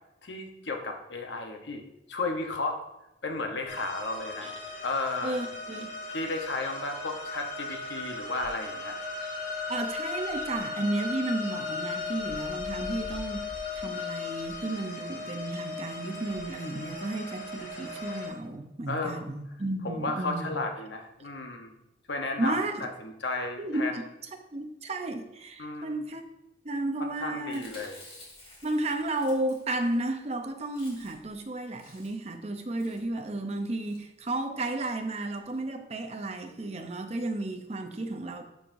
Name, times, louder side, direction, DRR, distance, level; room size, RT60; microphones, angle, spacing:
voice 1, 0.2-2.8 3.2-4.5 4.8-5.4 6.1-8.9 18.9-19.2 19.8-21.7 22.1-24.0 25.6-25.9 27.0-28.0, left 3 dB, 90° left, 4 dB, 1.0 m, -34 dB
sound 1, 3.7-18.3, left 3 dB, 55° left, 2.3 m, -37 dB
voice 2, 5.2-5.9 9.7-13.5 13.8-20.5 22.4-22.9 23.6-24.0 24.5-26.2 26.6-27.7 28.6-38.4, right 2 dB, 35° right, 5 dB, 0.7 m, -33 dB
Chewing mastication, 27.4-30.0 30.3-30.4 30.6-31.3 31.6-32.3 32.8-33.1 33.7-34.0 34.7-34.9 35.2-35.3 35.5-35.6, left 2 dB, 30° left, 2.5 m, -52 dB
11.5 x 4.7 x 2.6 m, 0.92 s
head